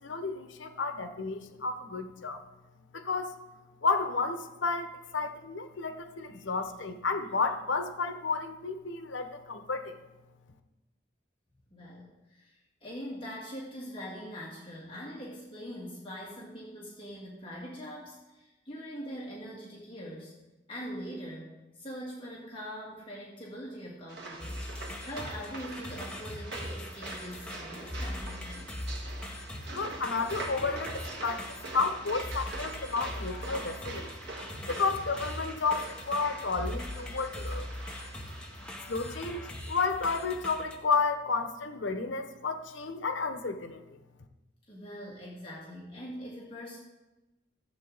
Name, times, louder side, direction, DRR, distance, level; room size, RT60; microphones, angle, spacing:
voice 1, 0.0-2.4 2.9-3.3 3.8-9.9 29.7-34.1 34.7-37.7 38.9-43.8, left 4 dB, 85° left, 8 dB, 0.8 m, -32 dB
voice 2, 11.7-20.3 20.7-28.7 44.7-46.8, equal, 30° left, -5 dB, 2.0 m, -43 dB
sound 1, 24.1-38.7, right 2 dB, 60° right, 1.5 m, -44 dB
sound 2, 24.4-40.8, left 1 dB, 5° left, 0.9 m, -41 dB
14.0 x 7.8 x 3.9 m, 1.1 s
head